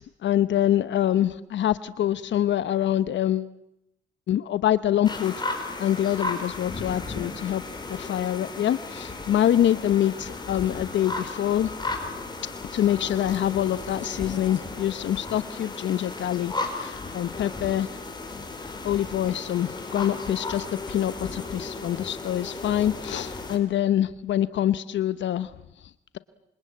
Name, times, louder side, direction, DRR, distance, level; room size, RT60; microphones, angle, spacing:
voice 1, 0.0-3.5 4.3-5.3 5.8-7.6 7.9-11.7 12.7-17.9 18.8-25.5, left 11 dB, 65° left, 15 dB, 1.0 m, -25 dB
sound 1, 5.0-23.6, left 3 dB, 20° left, 5.2 m, -35 dB
26.5 x 25.0 x 8.7 m, 0.80 s
cardioid pair, 90°, 20 cm